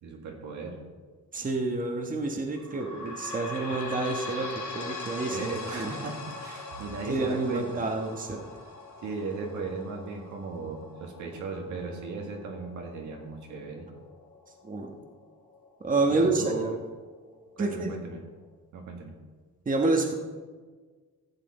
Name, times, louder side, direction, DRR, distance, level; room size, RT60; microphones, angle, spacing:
voice 1, 0.0-0.8 5.3-7.8 9.0-13.9 16.1-16.8 17.6-18.2 18.7-19.1, right 4 dB, 75° right, 2 dB, 1.9 m, -36 dB
voice 2, 1.3-4.5 4.7-5.4 5.7-5.9 7.1-8.4 14.6-15.0 15.8-16.5 17.6-17.9 19.7-20.1, right 3 dB, 25° right, 3 dB, 1.3 m, -28 dB
sound 1, 2.6-15.7 16.3-16.4 16.7-16.8 17.6-17.7, left 2 dB, 65° left, 2.4 m, -42 dB
15.0 x 7.4 x 4.2 m, 1.4 s
cardioid pair, 90°, 30 cm